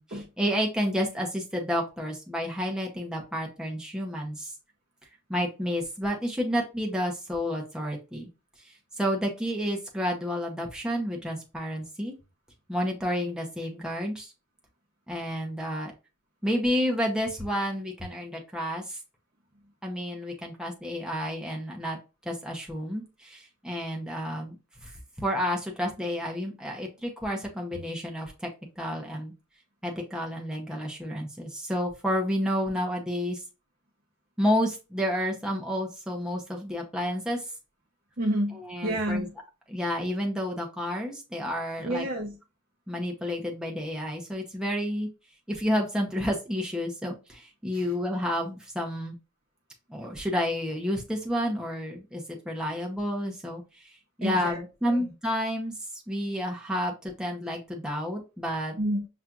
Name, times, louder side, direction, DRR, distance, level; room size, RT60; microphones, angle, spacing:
voice 1, 0.0-4.5 5.3-8.3 8.6-12.1 12.7-14.3 15.1-15.9 16.4-19.0 19.8-22.0 22.2-24.6 24.8-24.9 25.2-28.5 28.8-29.3 29.8-33.4 34.4-37.5 38.6-39.3 39.7-42.1 42.9-45.1 45.5-49.2 49.9-53.9 54.2-55.7 56.1-58.8, equal, 5° right, 0.7 m, -30 dB
voice 2, 38.2-39.3 41.8-42.4 47.7-47.9 54.2-55.1 58.8-59.1, right 1 dB, 45° right, 0.7 m, -30 dB
5.7 x 2.4 x 2.4 m
head